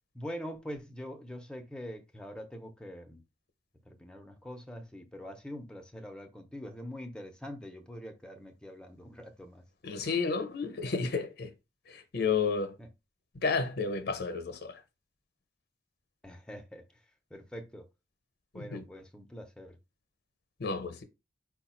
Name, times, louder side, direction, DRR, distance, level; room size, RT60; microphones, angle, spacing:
voice 1, 0.1-3.2 3.9-9.6 12.8-12.9 16.2-17.0 17.3-17.9 18.5-19.8, equal, 5° left, 0.6 m, -44 dB
voice 2, 9.8-11.5 11.9-12.7 13.4-14.8 18.5-18.8 20.6-21.0, left 4 dB, 60° left, 0.7 m, -31 dB
4.8 x 2.3 x 4.2 m
head